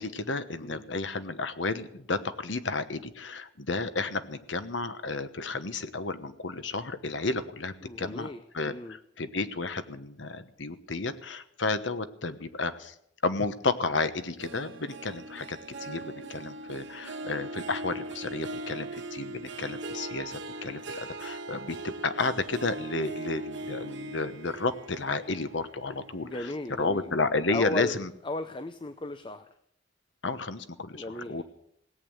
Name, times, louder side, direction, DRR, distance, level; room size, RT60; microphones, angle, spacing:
voice 1, 0.0-12.9 13.2-26.5 26.8-28.1 30.2-31.4, left 3 dB, 70° left, 11 dB, 1.2 m, -32 dB
voice 2, 7.8-9.0 26.2-27.1 27.5-29.5 30.9-31.4, left 2 dB, 25° left, 10 dB, 0.7 m, -36 dB
Harp, 14.4-27.1 27.5-27.9 28.4-28.5, right 2 dB, 65° right, 1.7 m, -40 dB
17.5 x 8.4 x 9.1 m, 0.72 s
head